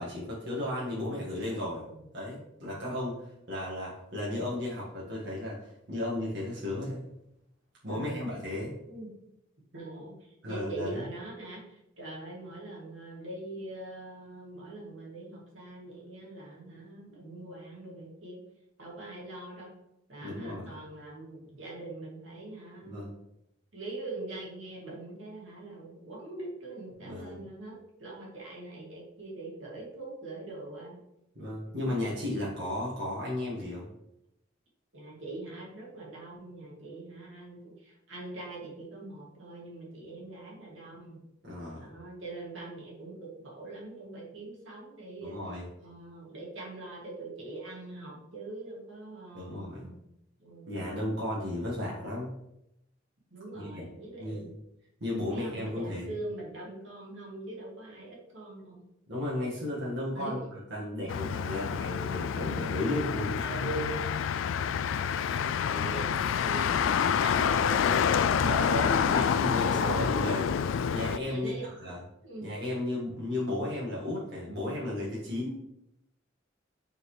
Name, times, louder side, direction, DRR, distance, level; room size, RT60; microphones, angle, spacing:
voice 1, 0.0-1.9 2.1-7.0 7.8-8.7 10.4-11.0 20.2-20.7 22.8-23.2 27.0-27.4 31.3-33.9 41.4-41.9 45.2-45.7 49.3-49.8 50.7-52.3 53.5-53.9 54.2-54.5 55.0-56.2 59.1-63.4 65.7-65.9 68.4-72.0 72.4-75.5, left 1 dB, 60° right, -7 dB, 1.7 m, -34 dB
voice 2, 7.9-8.4 8.9-9.3 9.7-18.4 18.8-19.7 20.1-23.1 23.7-31.0 31.7-32.1 34.9-41.2 41.8-45.4 45.8-50.0 50.4-50.9 51.8-51.9 53.3-54.5 55.3-58.8 60.1-60.5 62.4-62.6 63.4-64.1 65.2-68.0 68.7-70.1 71.3-71.7 72.2-72.5, right 2 dB, 80° right, -4 dB, 2.4 m, -42 dB
Motor vehicle (road), 61.1-71.2, left 7 dB, 80° left, 0.3 m, -28 dB
8.9 x 4.1 x 3.2 m, 0.82 s
head